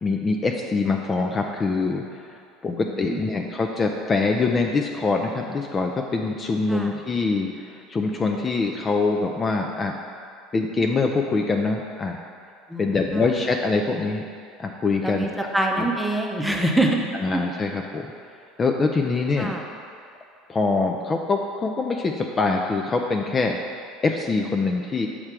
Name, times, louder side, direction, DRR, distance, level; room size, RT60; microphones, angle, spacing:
voice 1, 0.0-9.9 10.5-12.2 12.8-14.2 14.6-15.5 15.8-15.9 17.2-18.1 18.6-19.5 20.5-23.6 24.0-25.1, left 3 dB, 30° left, 2 dB, 0.5 m, -24 dB
voice 2, 2.7-3.2 6.7-6.9 12.7-13.2 15.0-17.0 19.4-19.6, right 1 dB, 5° right, 0 dB, 0.8 m, -25 dB
7.2 x 3.3 x 6.0 m, 2.3 s
supercardioid pair, 90°, 0 cm